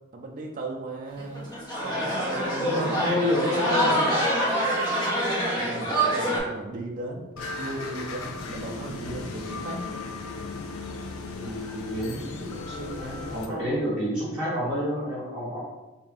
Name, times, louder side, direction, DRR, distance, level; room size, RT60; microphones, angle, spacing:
voice 1, 0.1-1.5 1.8-3.3 5.6-7.3 7.6-9.9 13.4-13.7, right 2 dB, 35° right, 0 dB, 0.4 m, -36 dB
sound 1, 1.2-6.4, right 1 dB, 20° left, 0.8 m, -26 dB
voice 2, 2.6-4.1 11.3-15.6, left 1 dB, 5° right, -12 dB, 1.4 m, -29 dB
sound 2, 7.4-13.5, left 3 dB, 70° left, 0.5 m, -36 dB
3.4 x 2.6 x 4.0 m, 1.1 s
head